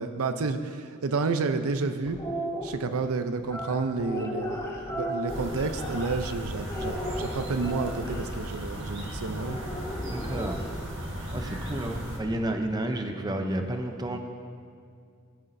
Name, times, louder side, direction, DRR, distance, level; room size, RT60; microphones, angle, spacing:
voice 1, 0.0-2.2 2.6-9.6, right 4 dB, 90° right, 9 dB, 0.5 m, -30 dB
sound 1, 2.1-2.6 3.4-6.3 6.7-8.2 9.4-10.7, equal, 15° left, 1.6 m, -35 dB
sound 2, 5.3-12.2, equal, 60° right, 1.3 m, -36 dB
voice 2, 10.1-10.7 11.3-14.2, right 1 dB, 20° right, 5 dB, 0.6 m, -31 dB
16.0 x 8.4 x 2.6 m, 2.2 s
head